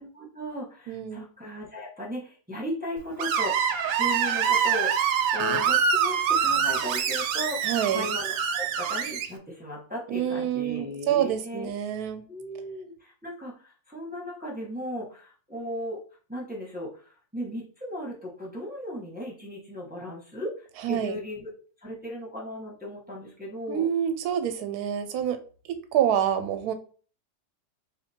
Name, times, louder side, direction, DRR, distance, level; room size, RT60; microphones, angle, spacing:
voice 1, 0.0-11.7 12.3-16.0 16.3-20.5 20.9-21.5 21.8-23.9, equal, 5° right, -3 dB, 0.9 m, -36 dB
voice 2, 0.9-1.3 7.6-8.1 10.1-12.2 20.8-21.2 23.7-25.4 25.7-26.7, right 9 dB, 70° right, 9 dB, 1.0 m, -27 dB
Screech, 3.2-9.3, right 7 dB, 90° right, 1.3 m, -25 dB
3.4 x 2.8 x 4.2 m, 0.40 s
omnidirectional pair, 1.9 m